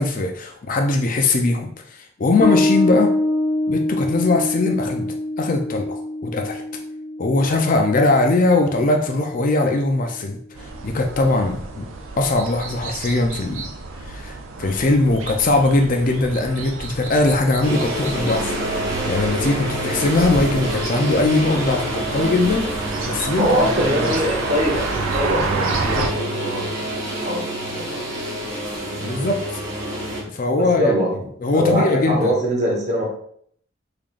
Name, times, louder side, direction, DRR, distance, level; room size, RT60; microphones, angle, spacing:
voice 1, 0.0-3.1 3.7-6.6 7.2-10.4 10.8-11.9 12.2-13.7 14.0-18.6 19.1-23.5 23.9-24.1 29.0-29.4 30.3-30.9 31.4-32.3, left 2 dB, 40° left, 3 dB, 0.4 m, -20 dB
Bass guitar, 2.4-9.6, left 1 dB, 20° left, 1.0 m, -25 dB
sound 1, 10.6-26.1, right 3 dB, 85° right, 0.5 m, -31 dB
sound 2, 17.6-30.2, right 1 dB, 65° right, 1.4 m, -27 dB
voice 2, 23.3-27.5 27.7-28.1 30.6-31.1 31.5-33.0, equal, 35° right, -1 dB, 1.0 m, -23 dB
3.6 x 3.4 x 2.4 m, 0.64 s
head